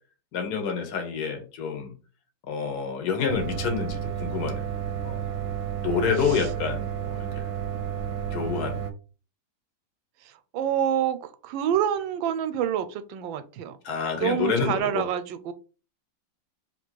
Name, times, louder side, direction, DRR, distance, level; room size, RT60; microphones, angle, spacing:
voice 1, 0.3-1.9 2.5-4.7 5.0-5.2 5.8-7.3 8.3-8.8 13.8-15.0, left 6 dB, 60° left, 4 dB, 1.5 m, -28 dB
sound 1, 3.3-8.9, right 9 dB, 70° right, 1.0 m, -31 dB
voice 2, 6.2-6.5 10.2-13.8 14.2-15.5, right 9 dB, 90° right, 11 dB, 1.3 m, -27 dB
3.3 x 2.8 x 4.4 m, 0.36 s
omnidirectional pair, 2.0 m